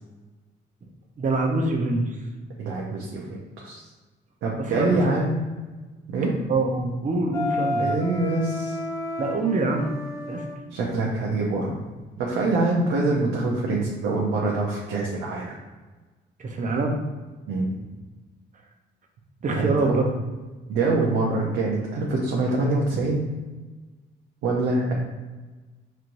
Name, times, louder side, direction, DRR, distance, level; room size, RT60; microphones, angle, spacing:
voice 1, 1.2-2.1 4.6-5.0 6.5-8.0 9.2-9.9 10.3-10.4 16.4-17.0 19.4-20.1 21.4-21.6, right 2 dB, 40° right, 2 dB, 0.7 m, -25 dB
voice 2, 2.6-3.8 4.4-5.5 6.1-6.3 7.8-8.8 10.7-11.8 12.2-15.6 17.5-17.7 19.6-20.0 20.7-23.2 24.4-24.9, right 2 dB, 80° right, -3 dB, 0.7 m, -25 dB
Wind instrument woodwind instrument, 7.3-10.6, left 1 dB, 15° left, 0.6 m, -30 dB
4.3 x 3.1 x 2.6 m, 1.3 s
cardioid pair, 90°, 20 cm